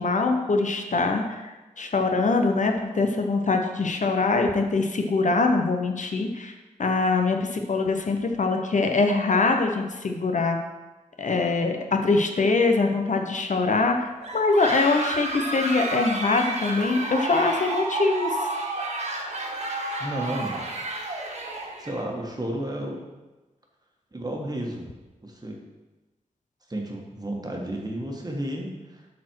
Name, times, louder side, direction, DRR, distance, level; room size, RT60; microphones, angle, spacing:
voice 1, 0.0-10.6 11.2-18.3, left 3 dB, 65° left, 4 dB, 0.9 m, -23 dB
sound 1, 14.2-22.1, right 2 dB, 50° right, 1.4 m, -31 dB
voice 2, 20.0-20.6 21.8-23.0 24.1-24.9 25.2-25.6 26.7-29.1, right 1 dB, 30° right, 0 dB, 1.4 m, -32 dB
12.0 x 4.3 x 4.6 m, 1.1 s
wide cardioid pair, 105°, 14 cm